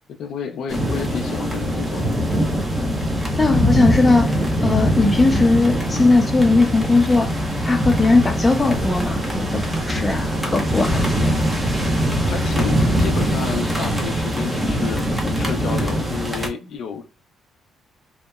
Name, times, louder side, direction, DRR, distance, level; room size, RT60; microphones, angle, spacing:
voice 1, 0.2-2.1 12.2-17.0, left 6 dB, 75° left, 0.4 m, -30 dB
sound 1, 0.7-16.5, equal, 15° right, 0.7 m, -22 dB
voice 2, 3.4-4.3 4.6-7.3 7.6-11.3, left 3 dB, 20° left, 0.6 m, -18 dB
sound 2, 8.5-14.1, right 3 dB, 75° right, 1.3 m, -37 dB
2.8 x 2.1 x 2.3 m
cardioid pair, 90°, 0 cm